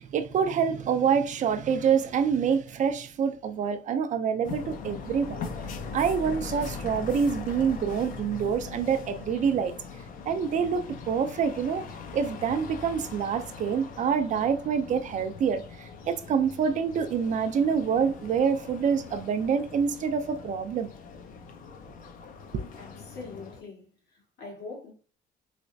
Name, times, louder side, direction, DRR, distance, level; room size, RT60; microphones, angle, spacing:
voice 1, 0.0-5.4 5.9-9.7 10.3-11.9 12.1-20.9 22.5-22.6, right 6 dB, 45° right, 0.5 m, -26 dB
sound 1, 4.4-23.6, left 4 dB, 55° left, 0.6 m, -41 dB
voice 2, 22.8-24.9, left 3 dB, 70° left, 1.7 m, -43 dB
3.3 x 2.9 x 2.6 m
cardioid pair, 110°, 17 cm